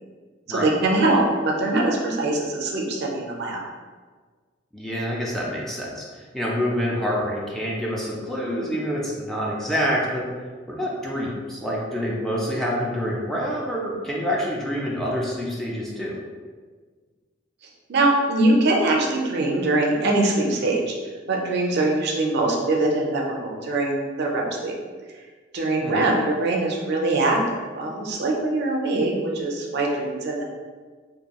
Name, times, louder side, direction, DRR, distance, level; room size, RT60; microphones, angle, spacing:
voice 1, 0.5-3.6 17.9-20.9 21.3-24.7 25.5-30.4, right 2 dB, 60° right, -1 dB, 0.5 m, -22 dB
voice 2, 4.7-10.3 10.7-16.2 25.8-26.0, equal, ahead, -4 dB, 0.3 m, -27 dB
2.5 x 2.3 x 2.9 m, 1.5 s
head